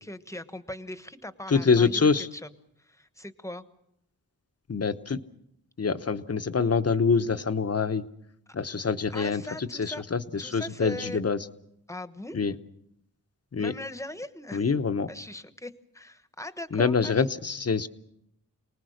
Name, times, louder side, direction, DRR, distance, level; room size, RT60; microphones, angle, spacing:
voice 1, 0.0-2.5 2.8-3.6 9.1-10.0 10.4-11.2 11.9-12.4 13.6-14.6 15.1-17.3, left 1 dB, 10° left, 11 dB, 1.2 m, -40 dB
voice 2, 1.5-2.3 4.7-5.2 5.8-8.1 8.5-11.5 12.3-12.5 13.5-13.7 14.5-15.1 16.7-17.9, left 5 dB, 40° left, 10 dB, 1.0 m, -25 dB
28.0 x 19.5 x 6.5 m, 0.79 s
wide cardioid pair, 95°, 37 cm